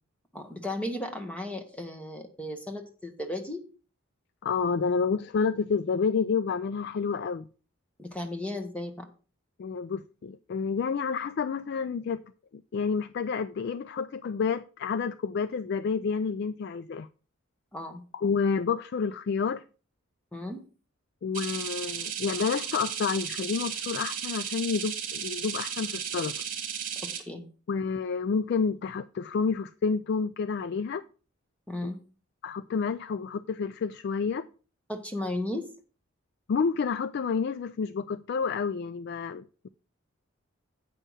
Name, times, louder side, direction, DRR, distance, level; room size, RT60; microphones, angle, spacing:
voice 1, 0.3-3.6 8.0-9.1 17.7-18.0 20.3-20.6 27.0-27.5 31.7-32.0 34.9-35.7, left 1 dB, 5° left, 1.0 m, -35 dB
voice 2, 4.4-7.5 9.6-12.2 12.7-17.1 18.1-19.6 21.2-26.3 27.7-31.0 32.4-34.5 36.5-39.7, left 5 dB, 50° left, 0.3 m, -29 dB
sound 1, 21.3-27.2, right 8 dB, 40° right, 1.4 m, -34 dB
8.4 x 5.5 x 5.5 m
head